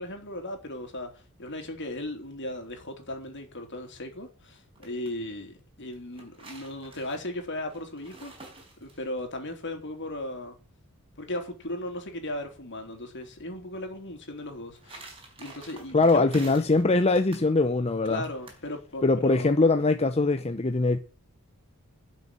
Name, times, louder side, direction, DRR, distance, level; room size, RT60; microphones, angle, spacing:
voice 1, 0.0-10.6 11.2-15.1 15.4-16.7 18.1-19.6, left 1 dB, 55° left, 3.4 m, -37 dB
sound 1, 4.5-5.1 5.9-9.2 14.4-16.8 17.1-17.5 18.2-18.6, right 2 dB, 25° right, 4.8 m, -48 dB
voice 2, 15.9-18.2 19.0-21.0, left 3 dB, 30° left, 0.7 m, -22 dB
12.0 x 6.5 x 9.2 m
head